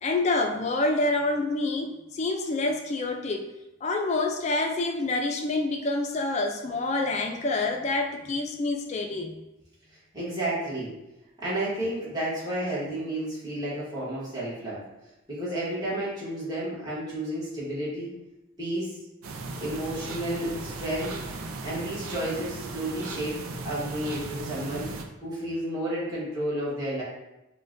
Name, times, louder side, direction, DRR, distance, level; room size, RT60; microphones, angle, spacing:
voice 1, 0.0-3.5 3.8-9.4, left 2 dB, 30° left, 3 dB, 0.3 m, -27 dB
voice 2, 10.1-10.9 11.4-14.8 15.3-18.1 18.6-19.0 19.6-21.1 21.6-23.4 23.6-24.9 25.2-27.0, right 1 dB, 20° right, -9 dB, 1.2 m, -31 dB
sound 1, 19.2-25.0, right 3 dB, 90° right, 0.4 m, -37 dB
5.6 x 2.2 x 2.6 m, 0.94 s
head